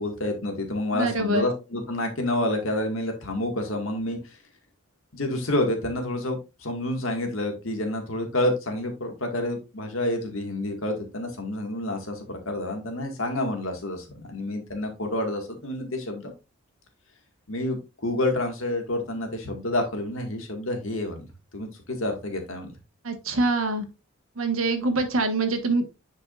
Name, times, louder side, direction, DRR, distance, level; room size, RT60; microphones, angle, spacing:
voice 1, 0.0-4.4 5.1-16.3 17.5-21.3 21.5-22.7, left 1 dB, 70° left, 4 dB, 2.0 m, -29 dB
voice 2, 0.9-1.4 23.0-23.8 24.4-25.8, right 2 dB, 75° right, 7 dB, 1.4 m, -24 dB
10.0 x 4.9 x 2.5 m, 0.27 s
head